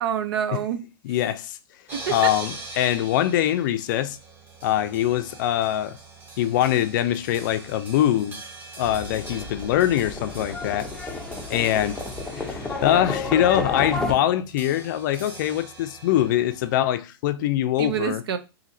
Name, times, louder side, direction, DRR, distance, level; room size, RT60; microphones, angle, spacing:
voice 1, 0.0-0.9 1.9-2.3 17.8-18.4, right 9 dB, 75° right, 0.6 m, -27 dB
voice 2, 1.0-1.6 2.1-4.2 4.6-6.0 6.4-8.4 8.8-10.9 11.5-12.0 12.3-18.2, left 12 dB, 50° left, 0.4 m, -23 dB
sound 1, 1.9-16.9, right 3 dB, 15° right, 1.1 m, -43 dB
Livestock farm animals working animals, 8.8-14.1, left 3 dB, 5° left, 0.6 m, -31 dB
4.1 x 2.7 x 2.6 m
hypercardioid pair, 140°, 13 cm